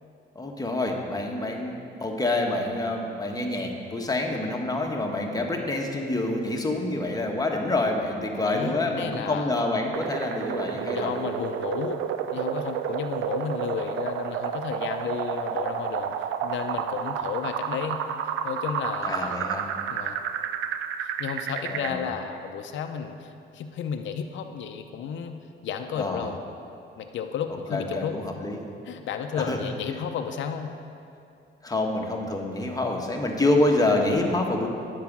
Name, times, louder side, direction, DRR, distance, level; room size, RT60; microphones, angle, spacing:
voice 1, 0.3-11.1 19.0-19.6 21.6-22.1 25.9-26.3 27.7-28.7 29.3-29.6 31.6-34.7, left 2 dB, 20° left, 1 dB, 1.3 m, -27 dB
voice 2, 8.3-9.5 10.7-12.0 12.3-16.1 16.4-18.0 18.4-19.4 19.9-20.2 21.0-25.4 25.6-26.4 27.0-28.5 28.8-30.7, left 7 dB, 70° left, 5 dB, 0.6 m, -33 dB
sound 1, 9.9-21.9, right 8 dB, 85° right, 0.5 m, -31 dB
10.5 x 4.9 x 7.3 m, 2.6 s
cardioid pair, 90°, 20 cm